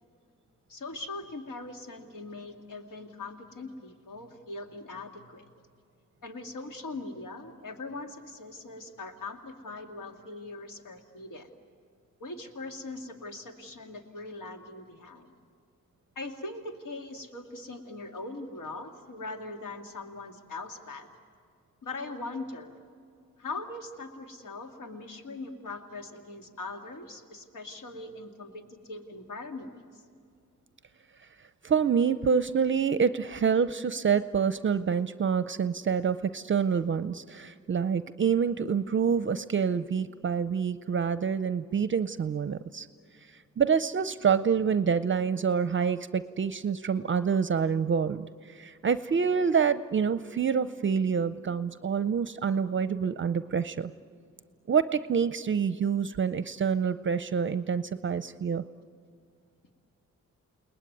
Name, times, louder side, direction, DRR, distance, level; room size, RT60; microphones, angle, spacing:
voice 1, 0.7-5.5 6.2-11.5 12.2-15.4 16.2-21.1 21.8-22.7 23.4-30.0, left 3 dB, 85° left, 4 dB, 2.4 m, -41 dB
voice 2, 31.6-42.9 43.6-53.9 54.7-58.6, right 6 dB, 40° right, 13 dB, 0.6 m, -27 dB
29.5 x 19.5 x 9.4 m, 2.3 s
wide cardioid pair, 130°, 31 cm